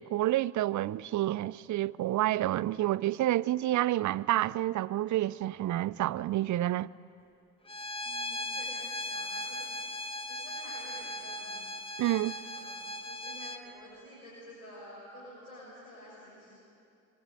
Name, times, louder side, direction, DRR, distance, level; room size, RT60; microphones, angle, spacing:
voice 1, 0.0-6.9 12.0-12.3, right 14 dB, 45° right, 0.6 m, -29 dB
Bowed string instrument, 7.7-13.6, left 1 dB, 15° left, 1.8 m, -38 dB
voice 2, 8.0-9.7 10.2-11.7 12.0-16.6, equal, 85° left, 6.4 m, -51 dB
25.5 x 22.0 x 9.0 m
figure-of-eight pair, 45°, 40 cm